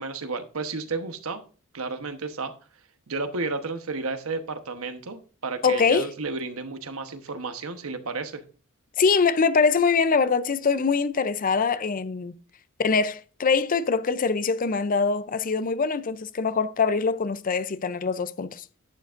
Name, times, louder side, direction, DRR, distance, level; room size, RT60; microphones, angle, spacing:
voice 1, 0.0-1.4 1.7-2.5 3.1-8.4, right 3 dB, 85° right, 1.1 m, -32 dB
voice 2, 5.6-6.1 9.0-12.3 12.8-18.6, left 5 dB, 40° left, 0.5 m, -23 dB
11.0 x 9.5 x 2.5 m
head